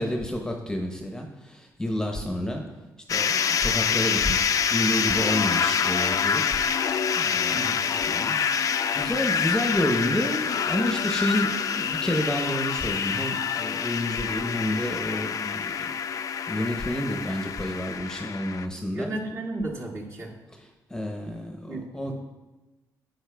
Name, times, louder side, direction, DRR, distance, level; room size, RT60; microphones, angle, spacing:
voice 1, 0.0-2.6 3.1-6.4 7.2-7.6 8.1-8.6 8.9-15.9 16.5-19.1 20.9-22.1, left 1 dB, 10° left, 3 dB, 0.8 m, -29 dB
sound 1, 3.1-18.7, left 7 dB, 50° left, 0.4 m, -26 dB
voice 2, 18.9-20.3 21.7-22.1, right 2 dB, 45° right, -3 dB, 1.9 m, -33 dB
11.0 x 8.0 x 2.3 m, 1.1 s
cardioid pair, 90°, 7 cm